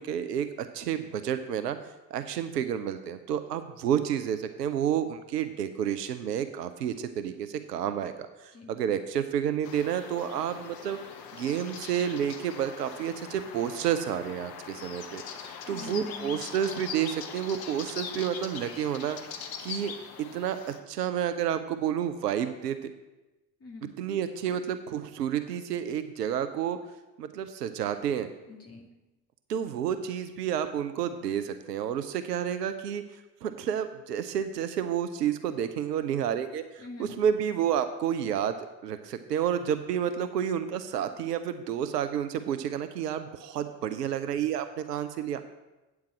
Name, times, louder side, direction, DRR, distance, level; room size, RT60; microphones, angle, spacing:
voice 1, 0.0-1.8 2.1-11.0 11.3-19.2 19.6-19.9 20.2-20.6 20.9-22.9 24.0-26.8 27.2-28.3 29.5-33.0 33.4-38.5 38.8-45.4, right 9 dB, 75° right, 10 dB, 0.7 m, -30 dB
sound 1, 9.6-20.8, left 7 dB, 50° left, 1.1 m, -42 dB
voice 2, 15.7-16.4 23.6-23.9 28.4-28.9 36.8-37.2, left 4 dB, 30° left, 1 dB, 2.0 m, -44 dB
8.6 x 4.6 x 7.5 m, 1.1 s
figure-of-eight pair, 55°, 48 cm